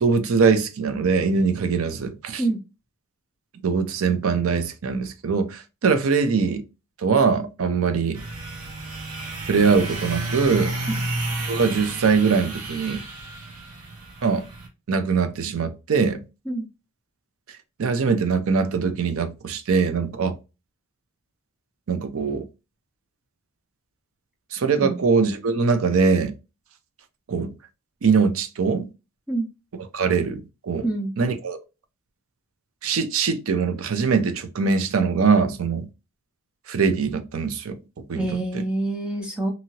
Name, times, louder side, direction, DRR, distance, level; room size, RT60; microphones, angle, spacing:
voice 1, 0.0-2.4 3.6-6.6 7.0-8.2 9.4-10.7 11.5-13.0 14.2-14.4 14.9-16.2 17.8-20.4 21.9-22.5 24.5-26.3 27.3-27.5 28.0-28.9 29.9-30.9 31.2-31.6 32.8-35.9 36.7-38.3 38.5-38.6, right 5 dB, 70° right, 0.5 m, -22 dB
sound 1, 8.1-14.7, right 2 dB, 85° right, 1.0 m, -31 dB
voice 2, 30.8-31.1 38.2-39.5, right 2 dB, 5° right, 0.4 m, -26 dB
2.8 x 2.7 x 2.8 m
head